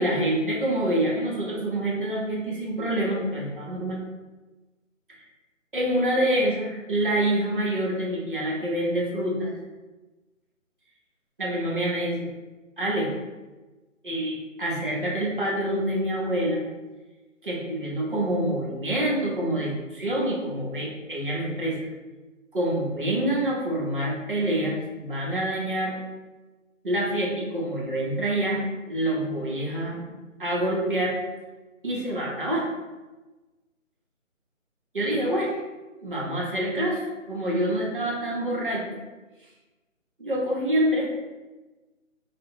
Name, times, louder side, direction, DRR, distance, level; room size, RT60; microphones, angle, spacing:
voice 1, 0.0-4.0 5.7-9.5 11.4-12.3 12.8-13.1 14.0-16.6 17.4-21.8 22.5-25.9 26.8-30.0 30.4-31.2 31.8-32.7 34.9-35.6 36.0-38.8 40.2-41.1, right 1 dB, 40° right, -4 dB, 0.6 m, -26 dB
2.2 x 2.0 x 3.5 m, 1.2 s
figure-of-eight pair, 155°, 40 cm